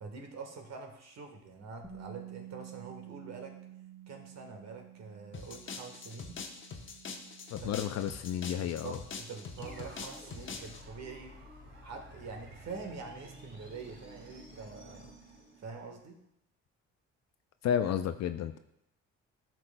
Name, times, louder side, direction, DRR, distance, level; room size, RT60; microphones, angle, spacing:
voice 1, 0.0-3.6 4.1-6.4 7.6-7.7 8.6-11.3 11.8-15.1 15.6-16.2, right 4 dB, 60° right, 4 dB, 1.4 m, -45 dB
Bass guitar, 1.8-8.1, right 11 dB, 5° left, 1.2 m, -51 dB
sound 1, 5.3-10.8, left 5 dB, 40° left, 1.0 m, -44 dB
voice 2, 7.5-9.0 17.6-18.6, left 9 dB, 60° left, 9 dB, 0.4 m, -32 dB
sound 2, 9.6-16.0, right 1 dB, 40° right, 2.5 m, -52 dB
12.0 x 6.1 x 2.2 m, 0.80 s
cardioid pair, 90°, 30 cm